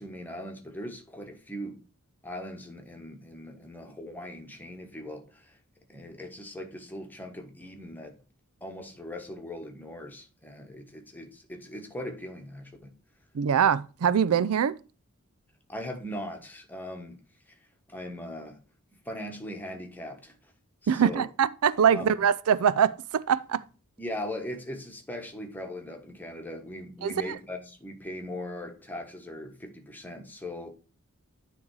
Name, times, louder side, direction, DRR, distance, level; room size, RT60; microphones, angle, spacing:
voice 1, 0.0-1.8 2.2-5.6 5.9-8.1 8.6-13.0 15.7-17.2 17.5-17.6 17.9-18.6 19.0-20.4 20.8-21.3 21.9-22.2 24.0-30.7, left 1 dB, 10° left, 1.3 m, -39 dB
voice 2, 13.3-14.7 20.9-23.6 27.0-27.1, right 8 dB, 85° right, 0.4 m, -23 dB
9.6 x 3.4 x 4.8 m
head